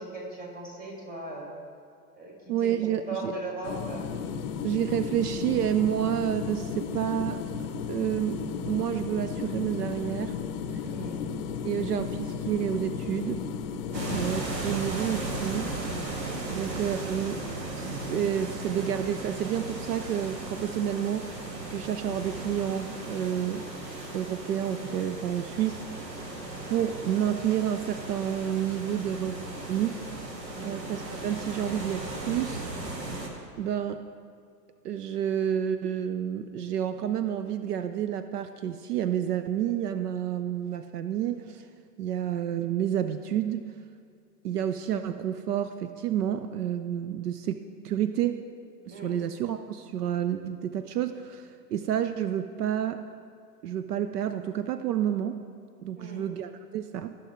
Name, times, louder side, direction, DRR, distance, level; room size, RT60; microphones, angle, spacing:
voice 1, 0.0-1.5 2.1-2.3 2.6-4.3 10.9-11.3 13.9-14.3 30.5-30.9 48.9-49.1 56.0-56.3, right 2 dB, 15° right, -3 dB, 2.3 m, -39 dB
voice 2, 2.5-3.3 4.6-10.4 11.6-13.4 14.1-15.7 16.5-17.4 17.7-23.7 24.1-25.8 26.7-29.4 29.7-30.0 30.6-32.7 33.6-34.1 34.8-41.7 42.0-43.7 44.4-47.6 47.8-48.4 48.9-53.0 53.6-55.4 55.8-57.2, right 10 dB, 65° right, 10 dB, 0.6 m, -29 dB
sound 1, 3.6-14.3, left 6 dB, 35° left, 0.6 m, -34 dB
sound 2, 13.9-33.3, right 2 dB, 85° right, 1.5 m, -36 dB
14.5 x 6.2 x 3.1 m, 2.2 s
hypercardioid pair, 110°, 50 cm